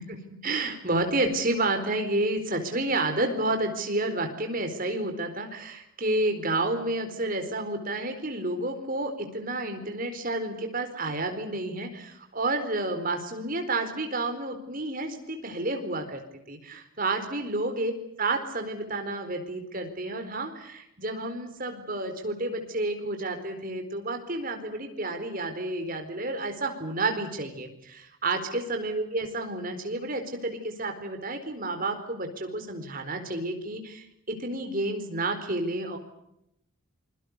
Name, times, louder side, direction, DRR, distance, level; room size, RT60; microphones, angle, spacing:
voice 1, 0.0-16.2 16.5-17.9 18.2-36.0, right 2 dB, 40° right, 6 dB, 4.4 m, -30 dB
27.0 x 23.0 x 6.8 m, 0.80 s
head